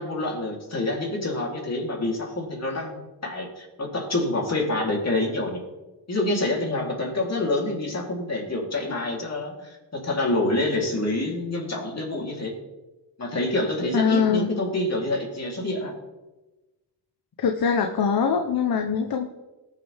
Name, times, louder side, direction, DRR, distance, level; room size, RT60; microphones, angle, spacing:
voice 1, 0.0-5.6 6.1-12.5 13.2-15.9, left 2 dB, 35° left, -1 dB, 3.5 m, -27 dB
voice 2, 13.9-14.5 17.4-19.3, left 6 dB, 55° left, 4 dB, 1.0 m, -23 dB
20.0 x 7.0 x 3.6 m, 1.1 s
cardioid pair, 80°, 43 cm